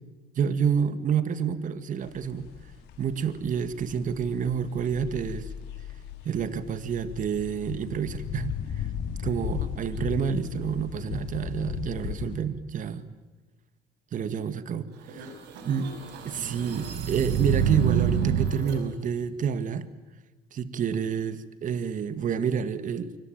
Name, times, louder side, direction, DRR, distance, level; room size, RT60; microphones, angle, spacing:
voice 1, 0.4-2.5 3.0-5.5 6.2-8.9 9.2-13.1 14.1-15.3 15.6-15.9 16.2-19.9 20.5-23.1, right 7 dB, 50° right, 13 dB, 2.0 m, -28 dB
sound 1, 2.0-12.4, left 9 dB, 85° left, 4.4 m, -37 dB
sound 2, 15.0-18.8, right 7 dB, 85° right, 5.6 m, -28 dB
26.5 x 24.5 x 9.1 m, 1.2 s
cardioid pair, 110°, 17 cm